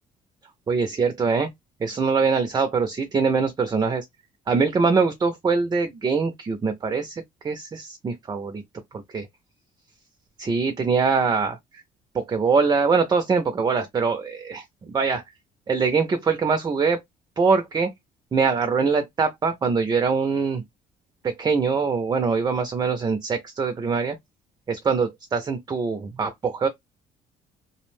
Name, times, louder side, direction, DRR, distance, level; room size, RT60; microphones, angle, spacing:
voice 1, 0.7-1.5 1.8-4.1 4.5-8.6 8.9-9.3 10.4-11.8 12.1-15.2 15.7-17.0 17.4-17.9 18.3-20.6 21.2-24.2 24.7-26.7, right 5 dB, 25° right, 0.4 m, -23 dB
2.4 x 2.1 x 3.1 m
cardioid pair, 110°, 17 cm